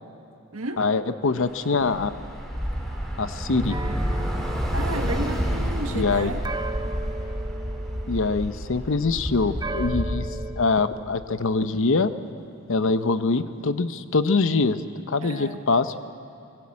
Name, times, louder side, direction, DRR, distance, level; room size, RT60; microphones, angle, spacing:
voice 1, 0.8-2.1 3.2-3.8 5.9-6.3 8.1-10.3 10.5-12.1 12.7-16.0, left 3 dB, 65° left, 11 dB, 0.8 m, -24 dB
Bus / Traffic noise roadway noise, 1.4-10.1, equal, ahead, 3.1 m, -29 dB
sound 1, 3.7-8.9 9.6-10.5, right 2 dB, 20° right, 0.7 m, -37 dB
voice 2, 4.7-6.4 15.2-15.6, right 2 dB, 85° right, 5 dB, 1.7 m, -32 dB
24.0 x 17.0 x 8.7 m, 2.7 s
head